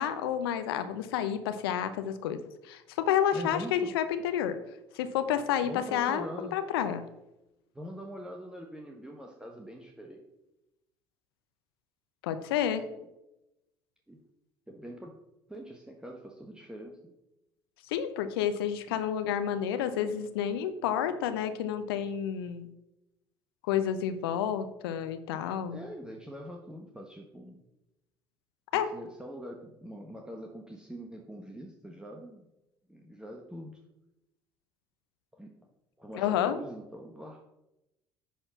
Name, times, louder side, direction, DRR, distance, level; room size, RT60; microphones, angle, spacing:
voice 1, 0.0-4.6 4.9-6.3 6.5-7.0 12.2-12.8 17.9-22.7 23.6-25.8 28.7-28.9 36.1-36.6, left 9 dB, 70° left, 10 dB, 0.7 m, -30 dB
voice 2, 3.3-4.0 5.6-6.6 7.7-10.2 12.9-13.0 14.1-14.2 14.7-15.1 15.5-17.2 18.9-19.0 25.7-27.6 28.7-32.5 32.9-33.8 35.3-35.5 36.0-37.4, equal, 5° right, 1 dB, 1.3 m, -43 dB
10.0 x 4.4 x 5.8 m, 0.91 s
figure-of-eight pair, 60°, 13 cm